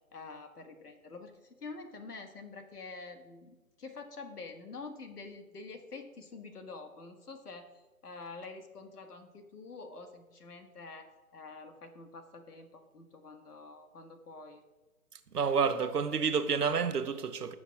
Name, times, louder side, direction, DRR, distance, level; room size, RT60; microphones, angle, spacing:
voice 1, 0.1-14.6, left 3 dB, 80° left, 1.7 m, -47 dB
voice 2, 15.3-17.5, right 5 dB, 85° right, 1.1 m, -29 dB
17.0 x 7.3 x 2.4 m
hypercardioid pair, 175°, 46 cm